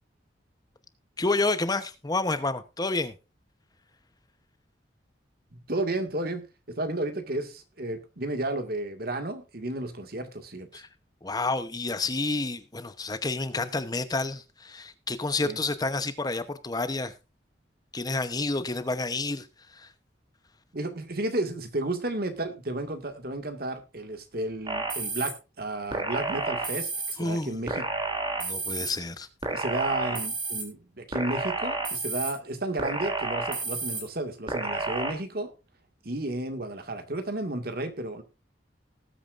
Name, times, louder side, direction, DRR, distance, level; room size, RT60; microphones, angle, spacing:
voice 1, 1.2-3.1 10.7-10.9 11.2-17.1 17.9-19.9 27.2-27.6 28.4-29.3, left 3 dB, 20° left, 11 dB, 0.9 m, -29 dB
voice 2, 5.5-10.7 15.4-15.6 20.7-27.9 28.6-28.7 29.5-35.5 36.0-38.2, right 2 dB, 55° right, 7 dB, 2.0 m, -32 dB
sound 1, 24.7-25.3 25.9-27.1 27.7-28.9 29.4-30.6 31.1-32.3 32.8-34.0 34.5-35.1, right 3 dB, 25° right, 3.0 m, -30 dB
19.0 x 8.7 x 2.5 m, 0.29 s
head